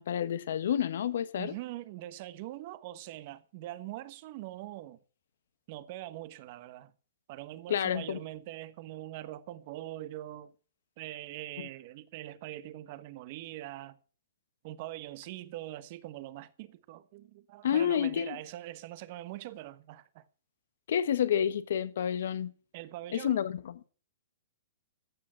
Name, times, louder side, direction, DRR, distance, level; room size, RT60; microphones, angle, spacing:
voice 1, 0.0-1.5 7.7-8.2 11.6-11.7 17.6-18.4 20.9-22.5 23.1-23.8, left 9 dB, 70° left, 1.3 m, -29 dB
voice 2, 1.4-5.0 5.7-6.9 7.3-10.5 11.0-14.0 14.6-20.3 22.7-23.4, right 15 dB, 45° right, 1.2 m, -43 dB
15.0 x 6.3 x 7.6 m
hypercardioid pair, 135°, 0 cm